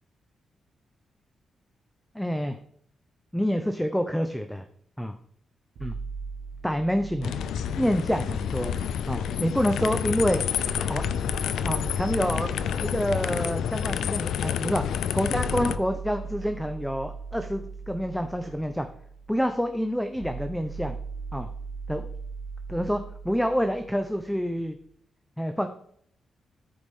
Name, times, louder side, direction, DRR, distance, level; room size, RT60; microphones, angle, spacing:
voice 1, 2.1-2.6 3.3-4.7 5.0-5.2 5.8-6.0 6.6-7.3 7.8-8.8 9.1-10.4 10.9-11.0 11.6-12.5 12.8-14.8 15.1-18.9 19.3-21.0 21.3-21.5 21.9-22.1 22.7-24.8 25.4-25.7, equal, ahead, 7 dB, 0.7 m, -27 dB
sound 1, 5.8-9.8 10.6-24.6, right 4 dB, 90° right, 3.1 m, -40 dB
sound 2, 7.2-15.8, left 8 dB, 90° left, 0.5 m, -29 dB
Tick-tock, 11.4-11.5 12.4-12.5 13.4-13.5 14.4-14.5 15.4-15.5 16.4-16.5 17.4-17.5 18.4-18.6, right 4 dB, 45° right, 2.1 m, -49 dB
14.0 x 4.9 x 3.7 m, 0.65 s
cardioid pair, 95°, 0 cm